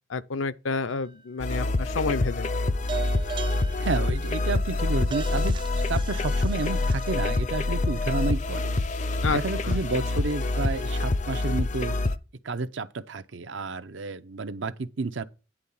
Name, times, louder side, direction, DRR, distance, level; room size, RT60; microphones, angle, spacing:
voice 1, 0.1-2.5 9.2-9.4 9.7-9.8, left 4 dB, 80° left, 0.6 m, -29 dB
sound 1, 0.9-1.5 2.9-7.4, right 8 dB, 25° right, 0.3 m, -39 dB
sound 2, 1.4-12.2, left 2 dB, 35° left, 0.5 m, -26 dB
voice 2, 3.8-5.5 5.9-8.7 9.3-12.0 12.4-15.2, right 3 dB, 70° right, 0.7 m, -31 dB
10.0 x 3.9 x 7.2 m
head